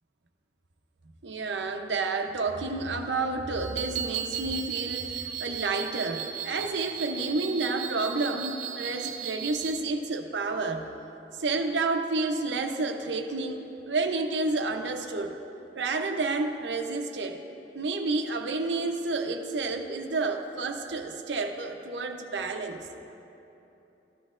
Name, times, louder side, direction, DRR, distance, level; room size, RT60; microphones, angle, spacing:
voice 1, 1.2-10.9 11.4-15.3 15.7-17.4 17.7-22.9, right 3 dB, 80° right, 5 dB, 0.7 m, -30 dB
sound 1, 3.6-9.8, right 9 dB, 45° right, 0.5 m, -36 dB
14.0 x 12.5 x 2.5 m, 3.0 s
head